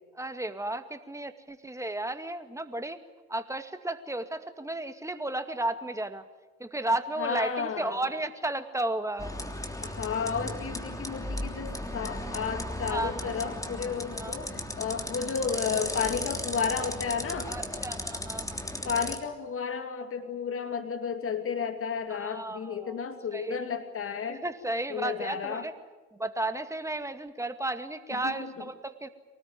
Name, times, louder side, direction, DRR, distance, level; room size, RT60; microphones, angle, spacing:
voice 1, 0.1-3.0 3.3-6.2 6.6-9.3 12.9-13.3 14.1-14.4 17.5-18.6 22.2-23.0 23.3-23.6 24.3-25.7 26.2-29.1, right 1 dB, 10° right, 9 dB, 2.1 m, -33 dB
voice 2, 7.2-8.0 9.8-17.5 18.8-24.4 24.9-25.7 28.1-28.6, left 6 dB, 40° left, 7 dB, 2.8 m, -32 dB
sound 1, 9.2-19.2, left 1 dB, 10° left, 3.2 m, -36 dB
24.5 x 19.5 x 9.7 m, 1.3 s
hypercardioid pair, 55°, 33 cm